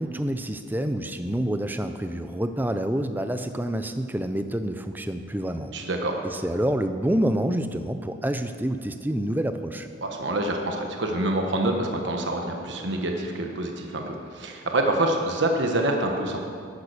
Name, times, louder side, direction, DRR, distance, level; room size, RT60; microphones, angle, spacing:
voice 1, 0.0-5.7 6.2-9.9, right 1 dB, 10° right, 8 dB, 0.5 m, -27 dB
voice 2, 5.7-6.2 10.0-16.4, right 1 dB, 65° right, 2 dB, 1.1 m, -26 dB
11.0 x 9.6 x 6.6 m, 2.3 s
head